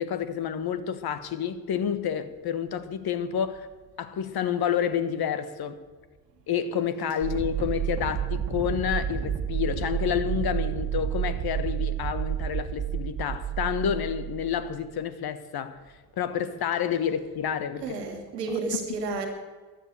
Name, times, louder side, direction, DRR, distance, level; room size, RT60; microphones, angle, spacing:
voice 1, 0.0-3.7 4.0-5.8 6.5-15.8 16.2-18.0 18.5-18.6, left 8 dB, 50° left, 12 dB, 1.4 m, -29 dB
sound 1, 7.2-14.9, right 9 dB, 60° right, 1.7 m, -30 dB
voice 2, 17.8-19.3, right 4 dB, 85° right, 4 dB, 1.9 m, -31 dB
14.5 x 10.5 x 6.7 m, 1.4 s
hypercardioid pair, 50°, 47 cm